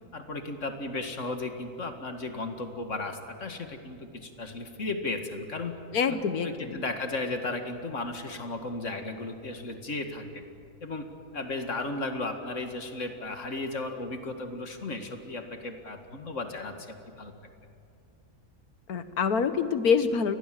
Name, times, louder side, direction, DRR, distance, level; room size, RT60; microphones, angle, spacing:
voice 1, 0.1-5.7 6.1-10.4 10.8-11.1 11.3-17.5, left 2 dB, 55° left, 6 dB, 2.1 m, -35 dB
voice 2, 5.9-6.8 18.9-20.4, left 6 dB, 75° left, 11 dB, 1.7 m, -26 dB
28.5 x 20.5 x 7.6 m, 2.4 s
omnidirectional pair, 1.6 m